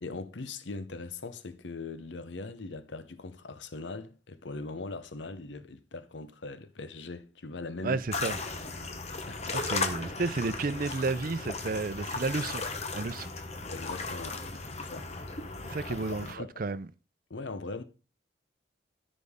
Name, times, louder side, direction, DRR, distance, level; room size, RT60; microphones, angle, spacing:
voice 1, 0.0-8.0 9.3-9.5 13.7-15.1 15.9-16.5 17.3-17.8, left 3 dB, 85° left, 0.8 m, -40 dB
voice 2, 7.8-8.4 9.5-12.6 12.9-13.3 15.6-16.9, right 3 dB, 50° right, 0.6 m, -32 dB
sound 1, 8.1-16.3, left 3 dB, 35° left, 1.0 m, -36 dB
13.5 x 5.3 x 3.6 m
head